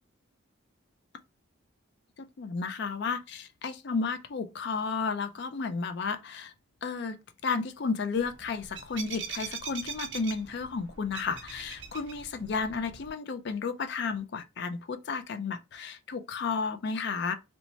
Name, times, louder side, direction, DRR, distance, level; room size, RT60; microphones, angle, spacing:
voice 1, 2.2-6.5 6.8-17.3, left 4 dB, 50° left, 0.4 m, -33 dB
sound 1, 8.2-13.1, right 6 dB, 55° right, 0.6 m, -42 dB
3.0 x 2.1 x 2.6 m
head